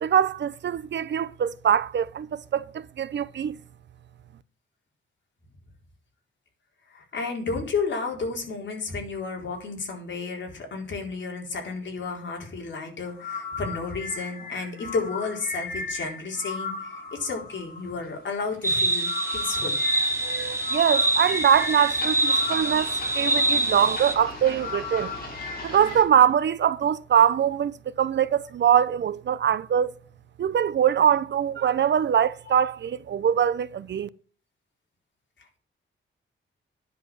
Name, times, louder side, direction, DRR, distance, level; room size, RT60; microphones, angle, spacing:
voice 1, 0.0-3.6 20.2-25.3 25.6-29.9 30.4-34.1, right 8 dB, 60° right, 0.6 m, -23 dB
voice 2, 6.9-19.8 35.4-35.6, left 4 dB, 60° left, 4.2 m, -32 dB
sound 1, 13.1-26.0, left 3 dB, 45° left, 4.9 m, -36 dB
sound 2, 18.6-24.1, right 2 dB, 10° right, 1.9 m, -25 dB
10.0 x 7.2 x 6.2 m
wide cardioid pair, 115°, 21 cm